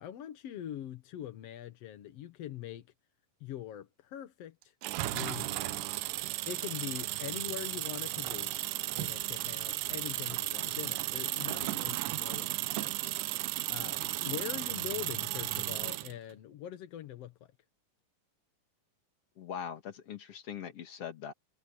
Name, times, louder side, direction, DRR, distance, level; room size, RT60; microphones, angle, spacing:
voice 1, 0.0-2.9 3.4-8.5 8.9-13.3 13.7-17.5, left 11 dB, 65° left, 1.6 m, -43 dB
sound 1, 4.8-16.1, right 18 dB, 80° right, 2.0 m, -35 dB
voice 2, 19.4-21.3, left 8 dB, 45° left, 2.6 m, -41 dB
omnidirectional pair, 4.2 m